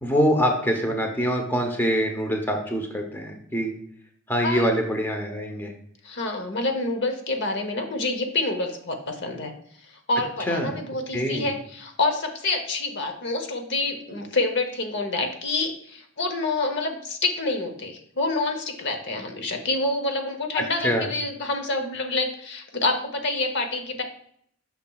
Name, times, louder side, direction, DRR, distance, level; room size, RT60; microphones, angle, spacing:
voice 1, 0.0-3.7 4.3-5.7 10.5-10.8 11.1-11.5 20.8-21.1, equal, 10° left, 3 dB, 0.7 m, -24 dB
voice 2, 6.0-9.5 10.1-24.0, left 2 dB, 55° left, 6 dB, 0.8 m, -27 dB
8.6 x 5.8 x 2.3 m, 0.66 s
head